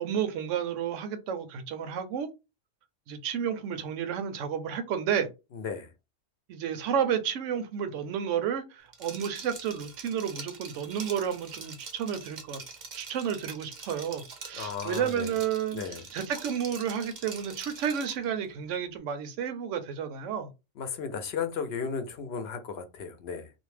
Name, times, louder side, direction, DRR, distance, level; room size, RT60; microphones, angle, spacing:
voice 1, 0.0-2.3 3.1-5.3 6.5-12.6 13.0-20.5, right 8 dB, 80° right, 0.9 m, -31 dB
voice 2, 5.5-5.9 14.5-15.3 15.7-16.0 20.8-23.5, left 6 dB, 65° left, 0.7 m, -35 dB
Liquid, 8.9-18.3, right 5 dB, 50° right, 0.6 m, -44 dB
2.5 x 2.1 x 3.1 m
omnidirectional pair, 1.3 m